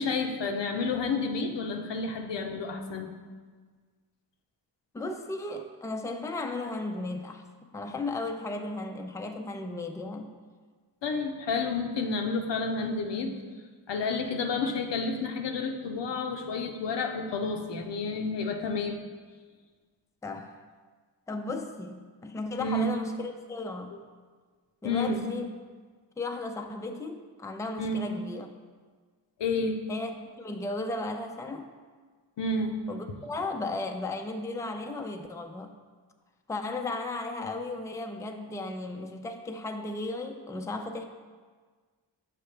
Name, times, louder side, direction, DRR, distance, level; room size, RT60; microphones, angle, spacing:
voice 1, 0.0-3.1 11.0-13.3 13.9-19.0 22.6-22.8 24.8-25.2 27.8-28.0 29.4-29.8 32.4-32.7, left 3 dB, 85° left, 4 dB, 0.7 m, -30 dB
voice 2, 4.9-7.4 7.7-10.3 20.2-20.6 21.3-24.0 24.8-25.5 26.2-28.5 29.9-31.7 32.9-35.7 36.5-41.0, left 2 dB, 10° left, 5 dB, 0.4 m, -35 dB
6.8 x 5.7 x 3.3 m, 1.5 s
wide cardioid pair, 90°, 42 cm